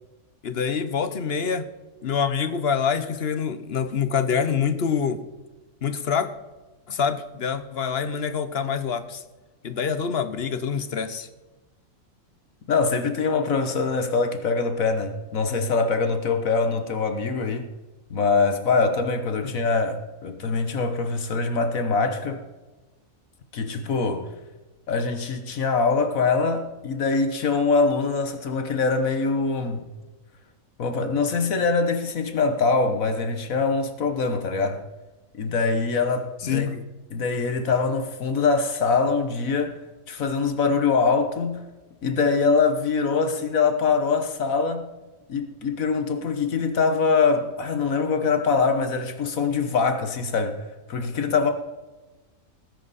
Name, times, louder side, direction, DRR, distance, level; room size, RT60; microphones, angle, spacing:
voice 1, 0.4-1.7 2.0-5.2 5.8-6.3 6.9-9.2 9.6-11.3 19.4-19.5 36.4-36.9, left 6 dB, 50° left, 1.1 m, -26 dB
voice 2, 12.7-17.7 18.1-22.4 23.5-24.3 24.9-29.8 30.8-34.8 35.3-36.7 37.1-39.8 40.1-41.7 42.0-44.9 45.3-50.6 50.9-51.5, left 4 dB, 75° left, 1.6 m, -23 dB
18.5 x 10.0 x 4.2 m
omnidirectional pair, 1.5 m